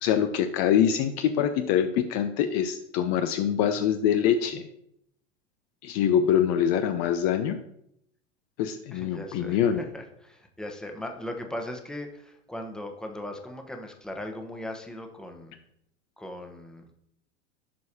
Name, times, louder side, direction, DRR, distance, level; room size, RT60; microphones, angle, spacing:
voice 1, 0.0-4.7 5.8-7.6 8.6-9.8, left 9 dB, 40° left, 8 dB, 0.6 m, -24 dB
voice 2, 8.9-15.5 16.2-16.9, left 1 dB, ahead, 3 dB, 1.0 m, -38 dB
11.0 x 4.6 x 2.9 m, 0.74 s
hypercardioid pair, 95°, 38 cm